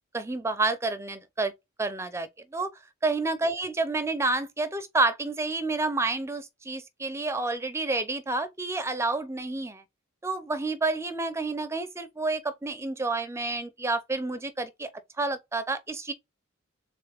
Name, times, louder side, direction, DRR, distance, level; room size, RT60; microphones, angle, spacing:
voice 1, 0.1-1.5 1.8-2.7 3.0-9.8 10.2-14.9 15.2-16.1, right 3 dB, 15° right, 0.5 m, -29 dB
3.7 x 3.3 x 3.4 m
head